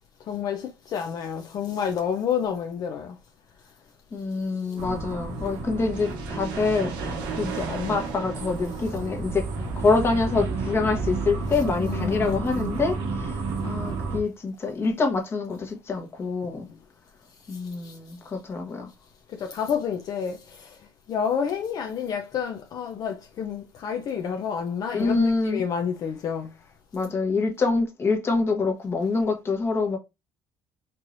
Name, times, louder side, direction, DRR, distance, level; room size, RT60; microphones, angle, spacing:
voice 1, 0.2-3.2 11.8-12.7 16.4-16.5 17.4-18.2 19.3-26.5, left 7 dB, 55° left, 0.6 m, -30 dB
voice 2, 4.1-16.7 17.5-18.9 24.9-25.6 26.9-30.0, left 4 dB, 30° left, 1.1 m, -26 dB
sound 1, 4.8-14.2, right 3 dB, 80° right, 1.2 m, -31 dB
4.5 x 3.1 x 2.6 m
cardioid pair, 110°, 8 cm